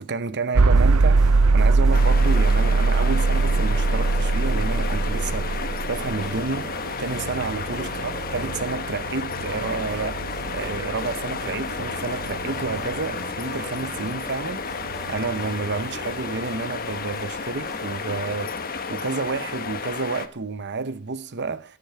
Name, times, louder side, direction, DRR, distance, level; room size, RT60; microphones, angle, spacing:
voice 1, 0.0-6.7 7.0-14.6 15.1-21.8, right 4 dB, 50° right, 0.9 m, -30 dB
sound 1, 0.5-16.5, right 3 dB, 85° right, 0.7 m, -23 dB
sound 2, 0.7-19.3, equal, 5° right, 1.8 m, -44 dB
sound 3, 1.9-20.3, left 5 dB, 40° left, 1.5 m, -32 dB
18.5 x 11.0 x 5.8 m
head